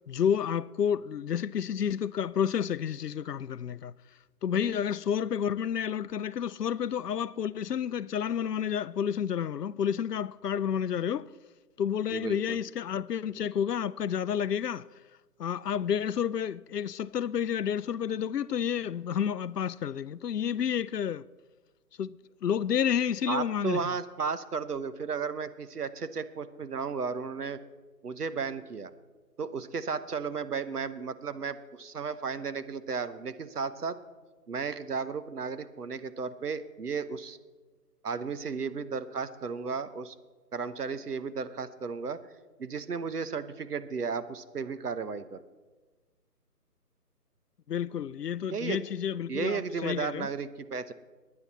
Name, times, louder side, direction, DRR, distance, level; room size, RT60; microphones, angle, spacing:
voice 1, 0.1-3.9 4.4-11.3 11.8-14.9 15.4-21.2 22.0-22.2 22.4-23.8 47.7-50.3, left 8 dB, 75° left, 0.6 m, -30 dB
voice 2, 12.1-12.6 23.3-27.6 28.0-28.9 29.4-34.0 34.5-37.4 38.0-40.1 40.5-42.2 42.6-45.4 48.5-48.8 49.3-50.9, right 5 dB, 70° right, 1.1 m, -34 dB
19.5 x 9.6 x 4.2 m
figure-of-eight pair, 160°, 48 cm